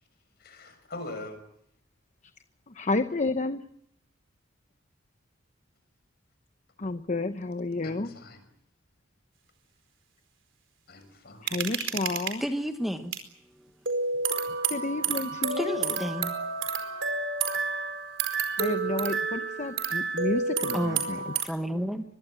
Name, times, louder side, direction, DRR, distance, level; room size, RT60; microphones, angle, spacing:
voice 1, 0.4-1.4 7.8-8.4 10.9-11.5, left 2 dB, 55° left, 9 dB, 6.5 m, -42 dB
voice 2, 2.7-3.7 6.8-8.1 11.4-12.4 14.6-16.0 18.6-21.3, left 2 dB, 40° left, 10 dB, 0.9 m, -31 dB
sound 1, 11.5-12.3 13.1-13.2 13.9-21.4, right 5 dB, 65° right, 4.6 m, -30 dB
voice 3, 12.4-13.1 13.6-13.7 15.6-16.4 20.7-21.0 21.4-22.2, equal, ahead, 6 dB, 1.3 m, -31 dB
24.0 x 22.5 x 9.0 m, 0.70 s
head